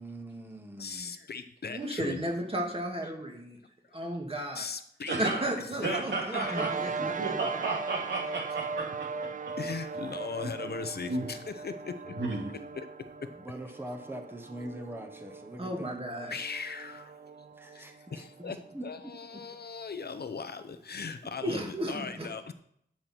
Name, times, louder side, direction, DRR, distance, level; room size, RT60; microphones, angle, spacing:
voice 1, 0.0-1.1 6.5-7.4 13.3-16.0 17.5-18.9, right 1 dB, 10° right, 5 dB, 1.3 m, -42 dB
voice 2, 0.8-2.2 4.5-5.2 5.8-6.0 6.3-6.6 9.6-12.2 12.7-13.3 16.3-17.2 17.7-22.5, left 5 dB, 65° left, 10 dB, 0.9 m, -39 dB
voice 3, 1.7-3.6 3.9-4.6 5.2-7.1 15.6-16.4 21.4-22.3, right 1 dB, 30° right, 1 dB, 2.3 m, -34 dB
voice 4, 5.0-5.4 5.8-9.5 10.7-10.8 11.1-11.3 12.1-12.6, right 3 dB, 85° right, -2 dB, 2.9 m, -33 dB
sound 1, 6.4-19.1, right 5 dB, 45° right, 0.6 m, -39 dB
13.0 x 5.8 x 4.6 m, 0.71 s
wide cardioid pair, 75°, 18 cm